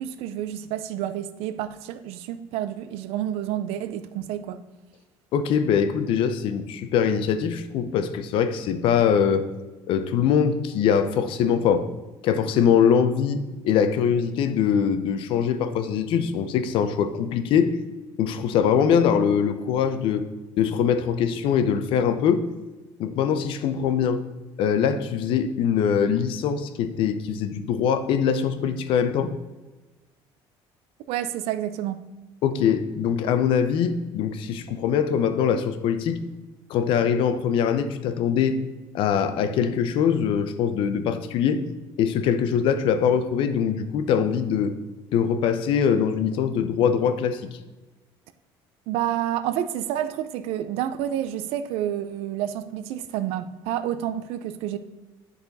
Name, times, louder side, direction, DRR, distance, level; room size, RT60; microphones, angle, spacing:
voice 1, 0.0-4.6 31.1-32.0 48.9-54.8, right 11 dB, 80° right, 0.5 m, -29 dB
voice 2, 5.3-9.4 9.9-11.9 12.2-17.7 18.2-20.2 20.6-22.4 23.0-24.2 24.6-29.3 32.4-36.2 36.7-38.6 38.9-41.6 42.0-44.7 45.1-47.6, left 7 dB, 60° left, 0.6 m, -22 dB
10.5 x 4.1 x 4.1 m
cardioid pair, 160°, 10 cm